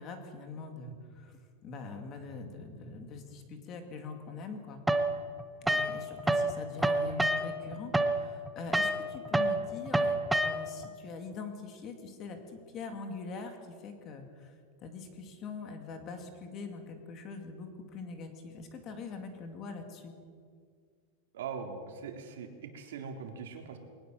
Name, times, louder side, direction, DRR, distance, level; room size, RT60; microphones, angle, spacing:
voice 1, 0.0-4.8 5.7-10.2 10.4-12.4 12.7-13.6 13.8-14.5 14.8-20.1, left 4 dB, 25° left, 5 dB, 2.3 m, -43 dB
sound 1, 4.9-6.5 6.8-10.9, right 1 dB, 5° right, 0.8 m, -28 dB
voice 2, 21.3-23.8, right 6 dB, 75° right, 3 dB, 3.6 m, -41 dB
21.5 x 19.5 x 7.6 m, 2.1 s
supercardioid pair, 180°, 0 cm